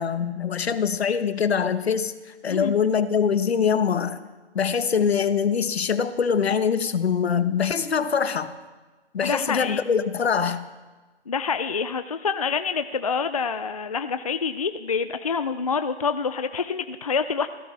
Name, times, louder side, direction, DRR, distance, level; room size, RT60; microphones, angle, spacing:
voice 1, 0.0-2.1 2.4-4.2 4.5-8.5 9.1-10.6, left 6 dB, 70° left, 12 dB, 1.2 m, -23 dB
voice 2, 9.2-9.8 11.3-17.5, left 5 dB, 35° left, 10 dB, 0.4 m, -27 dB
26.5 x 16.0 x 3.3 m, 1.3 s
hypercardioid pair, 165°, 33 cm